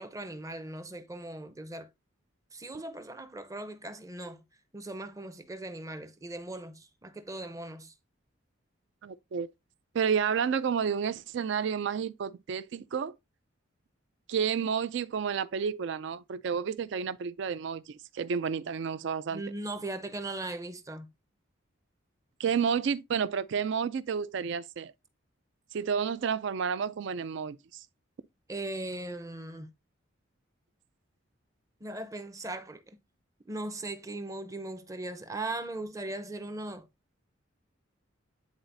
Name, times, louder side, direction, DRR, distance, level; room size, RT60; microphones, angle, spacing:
voice 1, 0.0-1.9 2.5-4.4 4.7-7.9 19.3-21.1 28.5-29.7 31.8-33.0 33.4-36.9, right 2 dB, 15° right, 0.6 m, -39 dB
voice 2, 9.0-9.5 9.9-13.1 14.3-19.4 22.4-24.9 25.7-27.8, right 6 dB, 60° right, 0.4 m, -30 dB
9.5 x 4.0 x 2.6 m
head